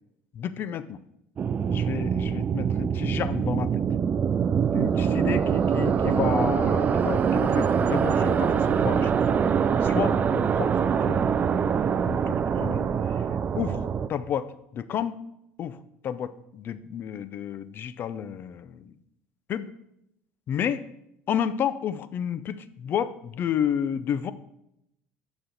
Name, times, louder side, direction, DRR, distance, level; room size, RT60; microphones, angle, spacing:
voice 1, 0.3-1.0 1.6-3.7 4.7-9.2 9.8-11.3 12.1-12.9 13.6-15.2 15.6-15.8 16.0-18.9 19.5-19.7 20.5-20.8 21.3-24.3, left 8 dB, 45° left, 15 dB, 0.5 m, -31 dB
sound 1, 1.4-14.1, right 7 dB, 30° right, 0.4 m, -24 dB
9.6 x 6.1 x 4.0 m, 0.81 s
cardioid pair, 115°, 5 cm